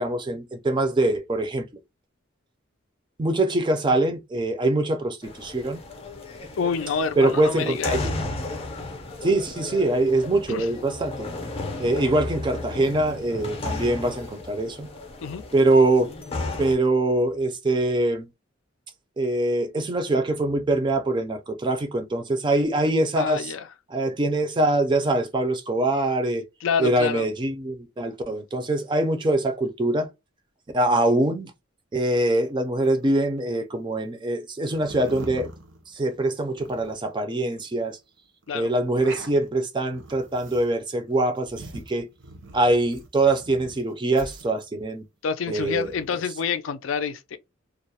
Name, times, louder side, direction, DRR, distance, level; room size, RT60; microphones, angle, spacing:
voice 1, 0.0-1.7 3.2-5.8 7.2-8.0 9.2-11.3 11.8-14.9 15.5-16.1 16.6-18.3 19.2-23.5 23.9-26.4 26.8-30.1 30.7-31.5 31.9-35.5 35.9-38.0 38.5-42.1 42.5-45.0 45.5-46.2, right 2 dB, 25° right, 0.4 m, -23 dB
sound 1, 5.2-16.7, left 2 dB, 30° left, 0.5 m, -34 dB
voice 2, 6.6-8.0 10.5-10.7 15.2-15.4 23.2-23.6 26.6-27.3 38.5-38.7 45.2-47.4, left 6 dB, 80° left, 0.4 m, -27 dB
sound 2, 32.8-33.6 34.7-36.2 36.5-37.2 37.6-37.7 37.9-38.0 38.4-38.5 38.8-39.5 39.9-40.8 41.1-43.8 44.2-44.9 45.4-46.1, right 2 dB, 65° right, 0.6 m, -43 dB
2.4 x 2.0 x 2.7 m
head